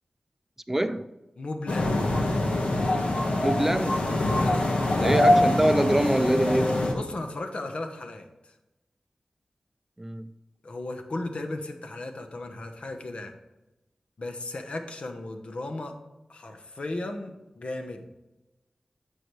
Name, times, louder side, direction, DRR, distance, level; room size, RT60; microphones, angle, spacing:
voice 1, 0.7-1.1 3.4-4.1 5.0-6.8 10.0-10.3, right 1 dB, 15° right, 0.4 m, -25 dB
voice 2, 1.4-2.1 4.4-4.8 6.9-8.5 10.6-13.3 14.2-15.9 16.3-18.1, left 2 dB, 65° left, 1.0 m, -35 dB
sound 1, 1.7-6.9, left 1 dB, 85° left, 1.2 m, -24 dB
9.9 x 6.5 x 3.2 m
wide cardioid pair, 85°, 2 cm